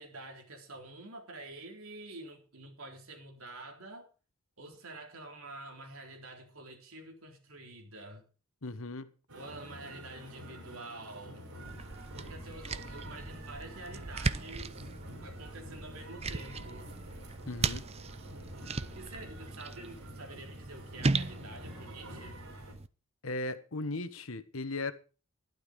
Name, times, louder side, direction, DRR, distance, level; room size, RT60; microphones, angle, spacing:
voice 1, 0.0-4.1 4.6-8.2 9.3-11.5 12.1-14.9 15.2-16.9 18.8-22.4, right 2 dB, 70° right, 4.0 m, -48 dB
voice 2, 8.6-9.1 17.4-17.8 23.2-24.9, left 2 dB, 70° left, 1.3 m, -37 dB
sound 1, 9.3-22.7, equal, 90° right, 4.2 m, -49 dB
sound 2, 11.6-22.9, right 3 dB, 30° right, 0.6 m, -37 dB
12.0 x 12.0 x 5.2 m
head